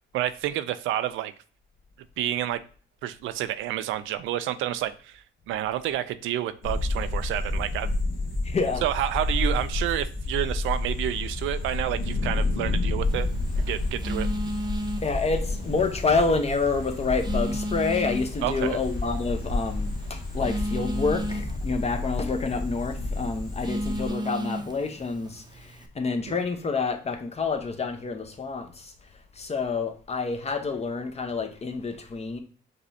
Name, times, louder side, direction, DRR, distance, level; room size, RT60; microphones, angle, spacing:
voice 1, 0.1-1.3 2.2-2.6 3.0-8.0 8.8-13.3 13.6-14.3 18.4-18.8, right 12 dB, 90° right, 0.4 m, -29 dB
sound 1, 6.6-24.1, left 2 dB, 90° left, 1.4 m, -30 dB
voice 2, 8.4-8.8 15.0-32.4, left 4 dB, 30° left, 0.8 m, -28 dB
sound 2, 10.6-20.9, left 2 dB, 55° left, 1.5 m, -50 dB
Telephone, 13.0-25.9, right 1 dB, 20° right, 0.7 m, -36 dB
5.2 x 3.1 x 2.7 m
cardioid pair, 90°, 20 cm